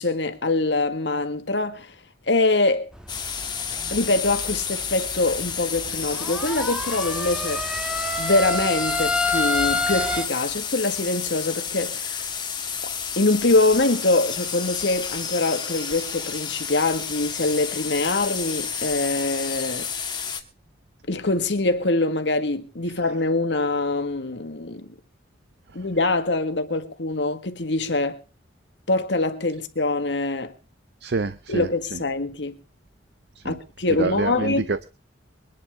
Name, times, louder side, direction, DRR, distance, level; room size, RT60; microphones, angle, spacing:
voice 1, 0.0-1.9 2.3-2.9 3.9-7.6 8.2-12.2 12.8-19.9 21.1-24.9 25.7-28.2 28.9-30.5 31.5-32.6 33.4-34.7, left 2 dB, 70° left, 1.7 m, -24 dB
sound 1, 2.9-10.2, left 2 dB, 5° right, 1.3 m, -29 dB
sound 2, 3.1-20.4, left 7 dB, 25° left, 1.6 m, -31 dB
voice 2, 31.0-31.7 33.4-33.6 34.0-34.8, right 4 dB, 60° right, 0.6 m, -26 dB
23.0 x 11.0 x 3.6 m
head